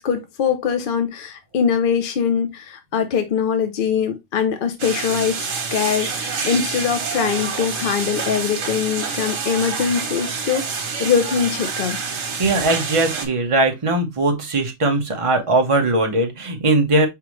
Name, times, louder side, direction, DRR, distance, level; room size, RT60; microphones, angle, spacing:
voice 1, 0.0-12.0, left 7 dB, 55° left, 0.7 m, -22 dB
sound 1, 4.8-13.3, right 5 dB, 85° right, 1.5 m, -27 dB
voice 2, 12.4-17.1, right 2 dB, 30° right, 0.9 m, -19 dB
4.9 x 3.5 x 3.0 m
omnidirectional pair, 1.3 m